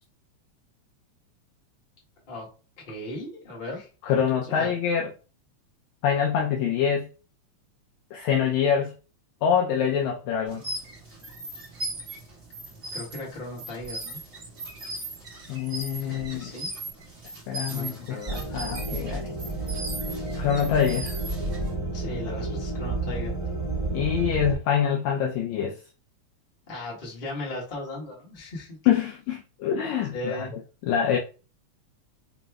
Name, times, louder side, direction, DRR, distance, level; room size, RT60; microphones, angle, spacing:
voice 1, 2.9-3.9 4.4-4.7 12.9-14.2 16.0-16.7 17.7-18.4 21.9-23.3 26.7-28.8 30.1-30.5, left 2 dB, 25° left, 1.2 m, -37 dB
voice 2, 4.0-5.1 6.0-7.1 8.1-8.9 9.4-10.6 15.5-16.5 17.5-19.3 20.4-21.2 23.9-25.8 28.9-30.5 30.9-31.2, left 8 dB, 80° left, 1.8 m, -25 dB
sound 1, 10.4-21.7, right 2 dB, 35° right, 1.1 m, -38 dB
sound 2, 18.3-24.5, right 2 dB, 15° right, 1.3 m, -31 dB
5.2 x 3.0 x 2.3 m
omnidirectional pair, 3.4 m